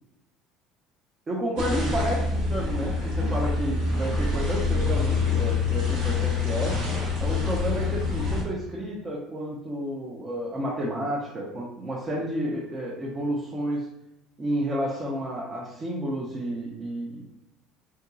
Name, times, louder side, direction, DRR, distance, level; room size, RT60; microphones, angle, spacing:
voice 1, 1.3-6.7 7.2-13.9 14.4-17.3, equal, 35° right, -4 dB, 0.7 m, -31 dB
sound 1, 1.6-8.4, left 4 dB, 75° right, 1.4 m, -26 dB
3.8 x 2.6 x 2.3 m, 0.82 s
hypercardioid pair, 70°, 0 cm